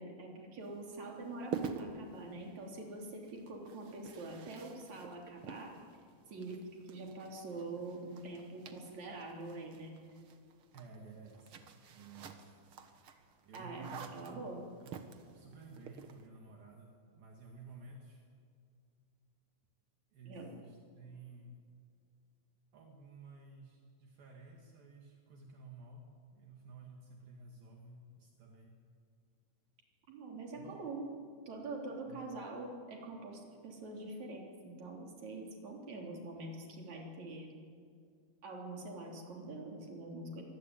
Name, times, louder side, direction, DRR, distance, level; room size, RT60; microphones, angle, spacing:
voice 1, 0.0-5.8 6.3-9.9 13.5-14.6 20.3-20.5 30.1-31.1 31.5-37.5 38.4-40.4, right 2 dB, 45° right, 0 dB, 4.5 m, -45 dB
sound 1, 0.6-16.3, right 6 dB, 85° right, 1.2 m, -49 dB
voice 2, 10.7-12.5 13.5-14.5 14.8-15.0 15.3-18.2 20.1-21.6 22.7-28.8 30.5-30.8 32.1-32.4, right 3 dB, 65° right, 0 dB, 3.8 m, -53 dB
24.5 x 19.5 x 9.1 m, 2.3 s
omnidirectional pair, 4.7 m